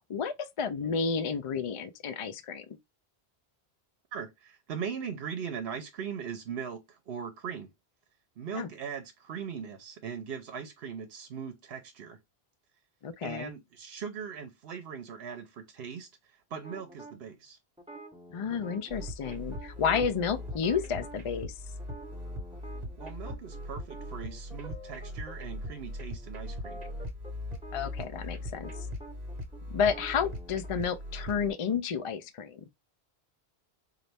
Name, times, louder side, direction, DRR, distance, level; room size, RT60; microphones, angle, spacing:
voice 1, 0.1-2.8 8.5-8.7 13.0-13.5 18.3-21.5 27.7-28.7 29.7-32.6, left 6 dB, 55° left, 0.3 m, -31 dB
voice 2, 4.1-7.7 8.4-12.2 13.2-17.6 23.0-26.8, right 7 dB, 70° right, 0.9 m, -40 dB
sound 1, 16.6-17.1 17.8-21.2 21.8-25.3 25.6-25.8 26.1-30.7, right 2 dB, 5° right, 0.8 m, -48 dB
sound 2, 18.9-31.5, left 1 dB, 40° right, 1.0 m, -40 dB
4.0 x 2.5 x 3.3 m
omnidirectional pair, 1.1 m